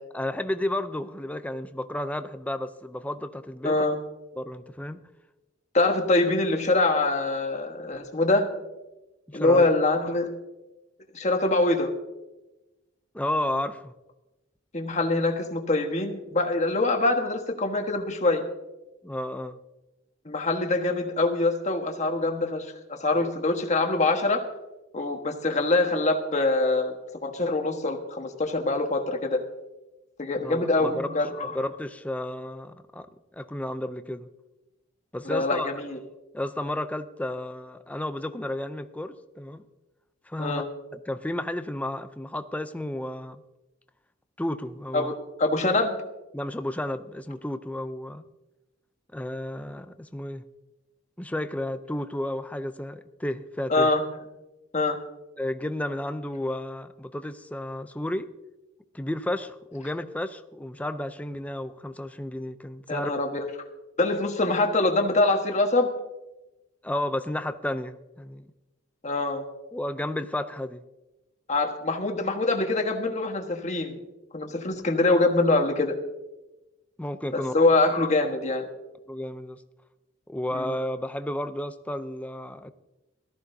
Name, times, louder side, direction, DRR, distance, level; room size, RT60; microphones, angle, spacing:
voice 1, 0.1-3.8 4.4-5.0 9.3-9.6 13.1-13.9 19.0-19.6 23.1-23.3 30.4-31.1 31.5-33.1 33.3-34.3 35.1-35.7 36.3-39.6 40.3-40.6 40.9-43.4 44.4-45.1 46.3-48.3 49.1-50.4 51.2-53.9 55.4-58.3 58.9-63.1 66.8-68.5 69.7-70.8 77.0-77.6 79.1-79.6 80.3-82.7, left 1 dB, 5° left, 10 dB, 0.5 m, -32 dB
voice 2, 3.6-4.0 5.7-8.5 9.3-10.3 11.1-11.9 14.7-18.4 20.2-24.4 24.9-26.9 27.2-29.4 30.2-31.5 35.2-36.0 40.4-40.7 44.9-46.0 53.7-54.0 54.7-55.0 62.9-63.3 64.0-65.9 69.0-69.4 71.5-74.0 74.3-76.0 77.3-78.7 80.5-80.7, left 2 dB, 35° left, 4 dB, 1.4 m, -24 dB
18.0 x 14.0 x 2.7 m, 1.0 s
head